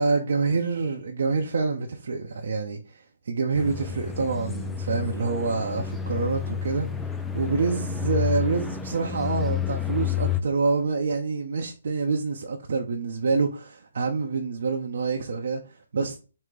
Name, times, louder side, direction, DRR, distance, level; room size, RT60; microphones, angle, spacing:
voice 1, 0.0-6.9 7.3-16.2, right 4 dB, 60° right, 0.7 m, -27 dB
sound 1, 3.5-10.4, left 7 dB, 5° left, 0.3 m, -30 dB
4.8 x 2.1 x 3.9 m
figure-of-eight pair, 145°, 0 cm